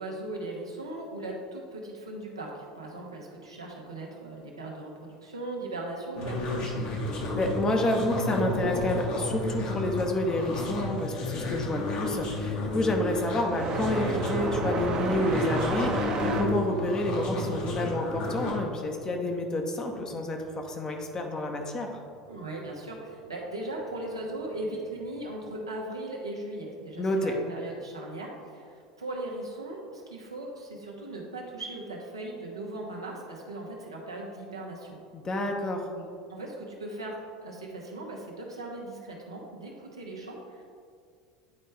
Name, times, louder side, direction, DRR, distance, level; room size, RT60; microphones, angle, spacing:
voice 1, 0.0-7.0 22.3-35.0 35.9-40.6, right 2 dB, 80° right, -2 dB, 1.1 m, -38 dB
sound 1, 6.2-18.5, left 2 dB, 50° left, 1.3 m, -32 dB
voice 2, 7.4-21.9 27.0-27.3 35.1-35.8, left 1 dB, 25° left, 3 dB, 0.9 m, -29 dB
sound 2, 11.5-19.9 20.2-21.2 22.2-22.3 23.1-23.2 24.9-25.1, right 3 dB, 35° right, 0.9 m, -33 dB
9.5 x 4.2 x 3.5 m, 2.3 s
figure-of-eight pair, 75°, 3 cm